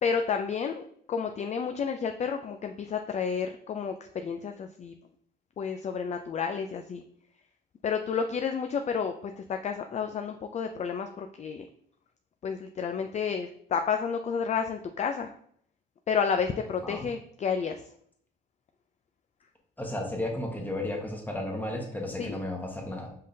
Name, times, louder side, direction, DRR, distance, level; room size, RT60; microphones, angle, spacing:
voice 1, 0.0-4.9 5.6-7.0 7.8-11.6 12.4-15.3 16.1-17.8 22.2-22.4, left 6 dB, 35° left, 6 dB, 0.4 m, -31 dB
voice 2, 19.8-23.1, left 1 dB, 10° left, 0 dB, 1.3 m, -33 dB
5.3 x 3.7 x 2.7 m, 0.66 s
cardioid pair, 90°, 20 cm